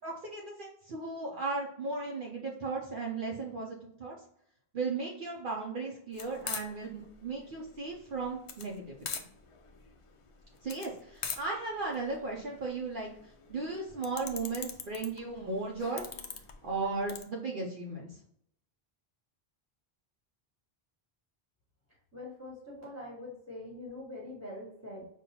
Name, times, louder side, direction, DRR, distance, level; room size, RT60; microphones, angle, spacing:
voice 1, 0.0-4.1 4.7-9.1 10.6-16.1 16.6-18.2, right 3 dB, 60° right, -2 dB, 0.8 m, -36 dB
sound 1, 6.1-17.2, left 6 dB, 50° left, 0.4 m, -43 dB
voice 2, 22.1-25.0, left 1 dB, 15° right, -3 dB, 1.4 m, -44 dB
5.4 x 2.4 x 2.8 m, 0.71 s
omnidirectional pair, 1.0 m